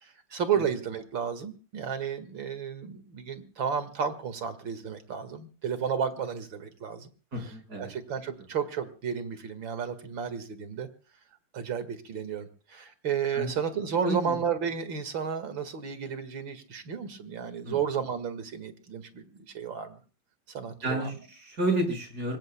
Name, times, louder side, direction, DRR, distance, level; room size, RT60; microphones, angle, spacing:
voice 1, 0.0-7.1 7.8-10.9 11.5-20.0 20.5-21.1, right 7 dB, 70° right, 11 dB, 2.6 m, -32 dB
voice 2, 7.3-7.9 13.3-13.5 14.0-14.4 17.6-17.8 20.8-22.4, right 2 dB, 50° right, 4 dB, 6.3 m, -30 dB
26.0 x 20.0 x 2.2 m, 0.37 s
omnidirectional pair, 2.2 m